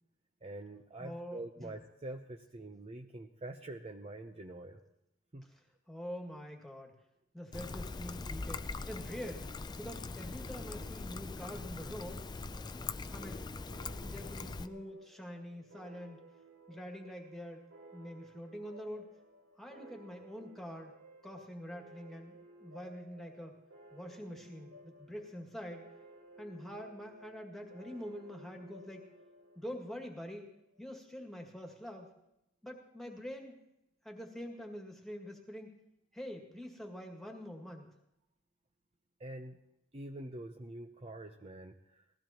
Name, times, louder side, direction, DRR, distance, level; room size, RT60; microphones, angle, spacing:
voice 1, 0.4-4.8 5.3-5.5 39.2-39.6 39.9-42.1, right 2 dB, 30° right, 3 dB, 0.7 m, -45 dB
voice 2, 1.0-1.7 5.5-5.6 5.9-7.0 7.3-12.3 13.1-13.5 14.0-16.2 16.7-17.7 17.9-19.2 19.6-21.0 21.2-23.6 23.9-25.8 26.4-29.1 29.6-30.5 30.8-32.1 32.6-33.6 34.0-35.8 36.1-37.9, equal, ahead, 1 dB, 2.1 m, -45 dB
Trickle dribble, 7.5-14.7, left 3 dB, 20° left, 0.4 m, -42 dB
sound 1, 13.7-30.8, right 2 dB, 65° right, 2.7 m, -57 dB
20.5 x 15.5 x 3.0 m, 0.85 s
head